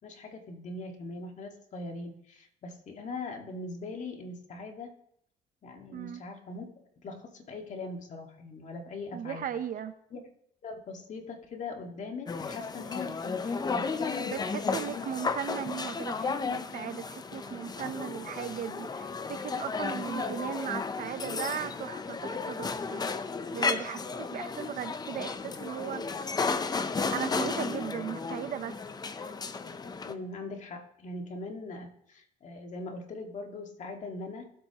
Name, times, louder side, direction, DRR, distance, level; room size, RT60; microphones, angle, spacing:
voice 1, 0.0-5.0 5.6-9.5 10.1-10.2 10.6-15.0 30.0-34.5, left 3 dB, 45° left, 3 dB, 2.0 m, -41 dB
voice 2, 5.9-6.2 9.1-9.9 14.3-23.1 23.5-26.0 27.1-28.7, right 9 dB, 55° right, 11 dB, 0.9 m, -37 dB
sound 1, 12.3-30.1, left 4 dB, 25° left, 0.7 m, -34 dB
19.5 x 8.1 x 3.0 m, 0.72 s
cardioid pair, 110°, 17 cm